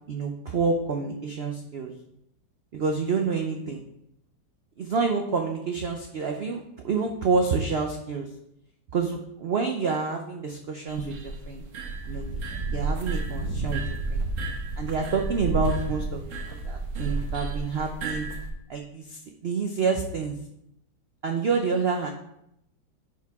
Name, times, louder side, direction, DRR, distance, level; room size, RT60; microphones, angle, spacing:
voice 1, 0.1-1.9 2.7-3.8 4.8-8.3 8.9-11.6 12.1-12.4 12.7-13.8 14.1-14.2 14.8-18.3 18.7-20.4 21.2-22.1, right 4 dB, 70° right, 3 dB, 0.5 m, -28 dB
sound 1, 10.9-18.5, right 3 dB, 50° right, 1.2 m, -31 dB
10.5 x 4.7 x 3.5 m, 0.77 s
omnidirectional pair, 1.9 m